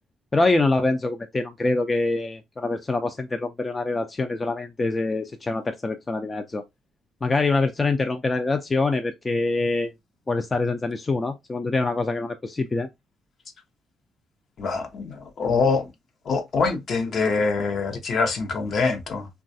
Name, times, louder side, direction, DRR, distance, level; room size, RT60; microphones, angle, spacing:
voice 1, 0.3-6.6 7.2-9.9 10.3-12.9, left 3 dB, 25° left, 0.3 m, -25 dB
voice 2, 14.6-15.9 16.2-19.3, left 4 dB, 60° left, 0.7 m, -24 dB
3.1 x 2.3 x 2.6 m
cardioid pair, 90°, 0 cm